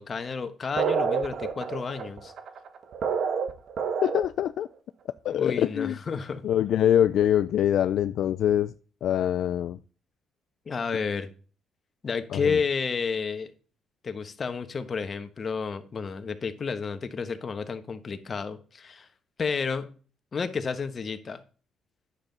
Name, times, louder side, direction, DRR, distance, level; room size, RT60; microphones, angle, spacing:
voice 1, 0.0-2.3 5.3-6.4 10.7-11.3 12.0-13.5 14.0-19.1 19.4-19.9 20.3-21.4, left 5 dB, 40° left, 1.1 m, -31 dB
sound 1, 0.8-4.5, right 6 dB, 65° right, 1.1 m, -28 dB
voice 2, 4.0-4.7 5.2-6.0 6.4-8.7 9.0-9.8 12.3-12.6, left 10 dB, 75° left, 0.3 m, -24 dB
9.7 x 7.1 x 3.9 m
cardioid pair, 90°, 0 cm